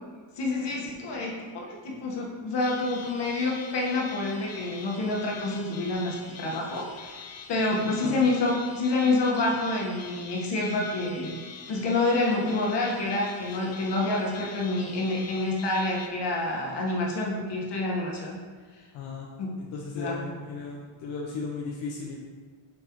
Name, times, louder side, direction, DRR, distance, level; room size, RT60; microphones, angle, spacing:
voice 1, 0.4-11.4 11.7-18.4 19.4-19.5 19.9-20.2, left 2 dB, 60° left, -2 dB, 1.7 m, -28 dB
sound 1, 2.6-16.1, left 6 dB, 35° left, 0.5 m, -44 dB
voice 2, 7.8-8.2 18.9-19.3 19.6-22.2, left 4 dB, 85° left, -1 dB, 0.9 m, -36 dB
7.7 x 5.3 x 3.2 m, 1.5 s
cardioid pair, 140°, 47 cm